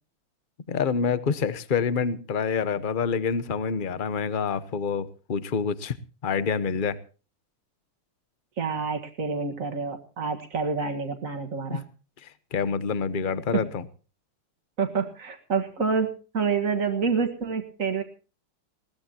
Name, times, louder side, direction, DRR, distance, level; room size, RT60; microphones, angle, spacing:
voice 1, 0.7-5.9 6.2-7.0 11.7-11.8 12.5-13.8, left 6 dB, 40° left, 15 dB, 0.7 m, -27 dB
voice 2, 8.6-11.8 14.8-16.1 16.3-18.0, right 5 dB, 40° right, 4 dB, 1.9 m, -27 dB
21.0 x 17.5 x 2.9 m, 0.36 s
omnidirectional pair, 2.4 m